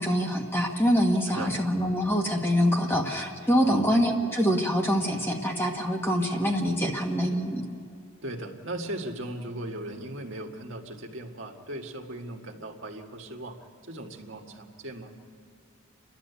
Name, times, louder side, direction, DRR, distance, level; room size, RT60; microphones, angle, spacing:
voice 1, 0.0-7.6, equal, 10° left, 1 dB, 1.5 m, -25 dB
voice 2, 1.3-1.6 3.6-3.9 8.2-13.6 13.9-15.1, right 1 dB, 65° right, 2 dB, 1.8 m, -38 dB
29.5 x 12.0 x 8.2 m, 2.4 s
head